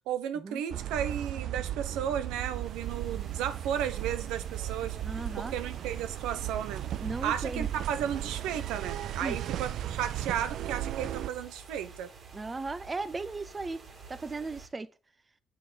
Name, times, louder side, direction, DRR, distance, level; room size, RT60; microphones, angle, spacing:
voice 1, 0.1-5.0 5.4-6.8 7.2-12.1, right 9 dB, 85° right, 1.1 m, -34 dB
sound 1, 0.7-11.3, right 12 dB, 70° right, 0.4 m, -36 dB
sound 2, 2.0-14.7, right 5 dB, 55° right, 3.7 m, -50 dB
voice 2, 5.0-5.5 7.0-7.7 9.2-9.4 12.3-13.8 14.1-14.9, right 3 dB, 25° right, 0.8 m, -36 dB
7.5 x 7.5 x 7.9 m
cardioid pair, 85°, 0 cm